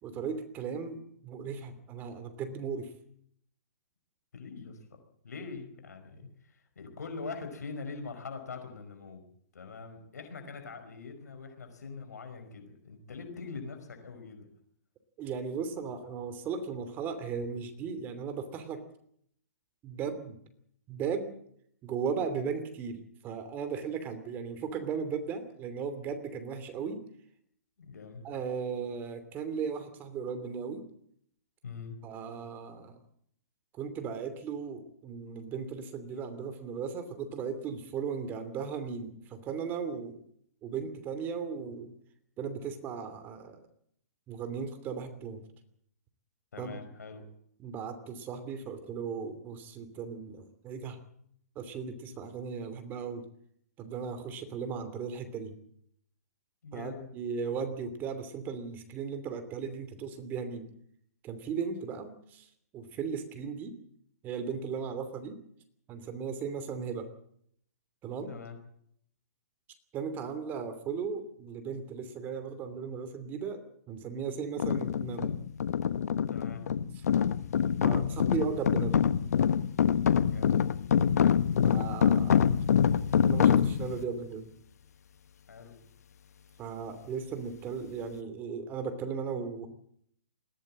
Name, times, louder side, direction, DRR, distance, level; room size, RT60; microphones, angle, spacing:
voice 1, 0.0-2.9 15.2-18.8 19.8-20.4 20.9-21.3 21.8-27.0 28.2-30.8 32.0-33.0 33.8-40.2 40.6-41.9 42.4-43.6 44.3-45.4 46.6-46.8 47.6-51.0 51.5-53.3 53.8-55.6 56.7-60.7 61.2-63.7 64.2-65.4 65.9-67.1 68.0-68.3 69.9-75.3 77.8-79.0 81.6-82.5 83.2-84.5 86.6-89.7, right 6 dB, 20° right, 10 dB, 2.9 m, -36 dB
voice 2, 4.3-5.0 5.2-9.3 9.5-14.5 27.8-28.2 31.6-32.0 46.5-47.3 56.6-57.1 68.3-68.6 76.3-76.7 80.2-80.6 85.5-85.8, left 4 dB, 90° left, 6 dB, 5.2 m, -43 dB
sound 1, 74.6-84.0, left 8 dB, 70° left, 1.2 m, -25 dB
21.0 x 16.5 x 7.6 m, 0.67 s
hypercardioid pair, 150°, 9 cm